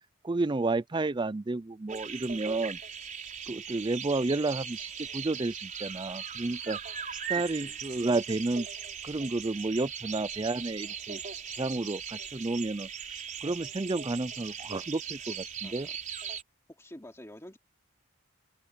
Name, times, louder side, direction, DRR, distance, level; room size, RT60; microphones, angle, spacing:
voice 1, 0.2-2.8 3.5-6.8 7.3-8.7 9.0-11.2 11.6-15.9, right 2 dB, 25° right, 0.5 m, -31 dB
sound 1, 1.9-16.4, right 7 dB, 40° right, 5.3 m, -39 dB
voice 2, 7.5-7.8 15.6-16.0 16.7-17.6, left 1 dB, 15° left, 3.2 m, -48 dB
head